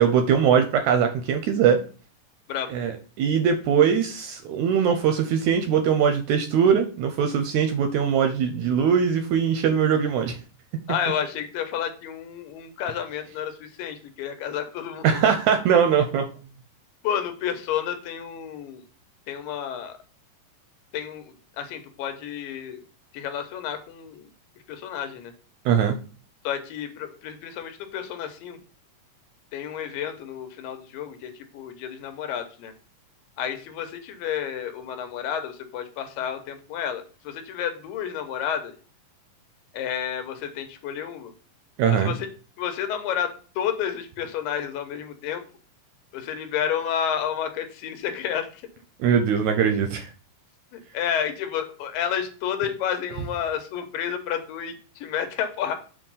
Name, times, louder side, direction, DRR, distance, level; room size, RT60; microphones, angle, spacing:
voice 1, 0.0-1.8 2.7-10.4 15.0-16.3 25.7-26.0 41.8-42.1 49.0-50.1, right 7 dB, 80° right, 6 dB, 1.7 m, -21 dB
voice 2, 10.9-15.1 17.0-18.8 19.3-20.0 20.9-22.8 23.1-24.3 24.7-25.3 26.4-28.6 29.5-32.7 33.4-38.7 39.7-41.3 41.9-42.3 42.6-45.4 46.1-48.6 50.7-55.8, left 8 dB, 90° left, 7 dB, 2.6 m, -30 dB
7.0 x 2.7 x 5.4 m, 0.38 s
omnidirectional pair, 3.8 m